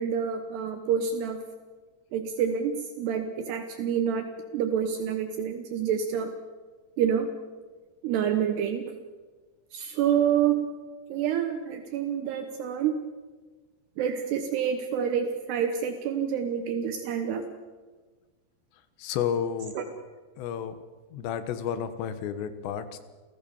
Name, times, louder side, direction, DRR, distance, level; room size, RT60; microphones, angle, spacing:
voice 1, 0.0-1.4 2.1-6.3 7.0-7.3 8.0-8.9 9.7-10.7 11.1-13.1 14.0-17.4 19.8-19.9, right 8 dB, 75° right, 6 dB, 3.1 m, -28 dB
voice 2, 19.0-19.8 20.4-20.8 21.1-23.0, left 8 dB, 75° left, 11 dB, 3.5 m, -31 dB
29.0 x 16.5 x 7.2 m, 1.4 s
omnidirectional pair, 5.1 m